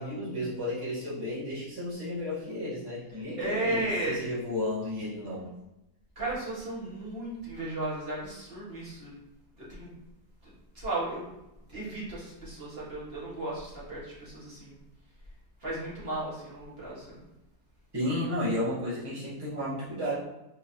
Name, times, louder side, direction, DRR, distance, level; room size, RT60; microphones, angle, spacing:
voice 1, 0.0-5.4 17.9-20.1, left 1 dB, 15° right, -10 dB, 1.6 m, -33 dB
voice 2, 3.4-4.3 6.1-9.2 9.6-9.9 10.4-11.2 11.7-14.7 15.6-17.2, right 1 dB, 40° right, -8 dB, 1.8 m, -35 dB
4.6 x 3.9 x 2.9 m, 0.91 s
omnidirectional pair, 1.7 m